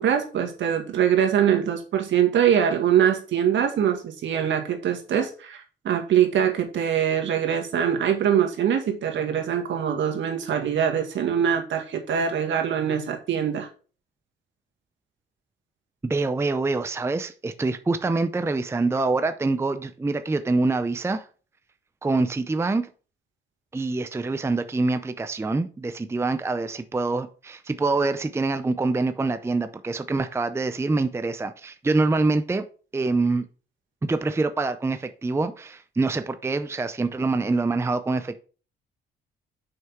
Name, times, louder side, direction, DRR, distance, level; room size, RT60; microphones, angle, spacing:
voice 1, 0.0-13.7, right 9 dB, 70° right, 1.9 m, -23 dB
voice 2, 16.0-21.3 22.0-22.9 23.7-32.6 32.9-33.4 34.0-38.4, right 3 dB, 15° right, 0.5 m, -25 dB
6.4 x 5.6 x 4.5 m
cardioid pair, 90°, 20 cm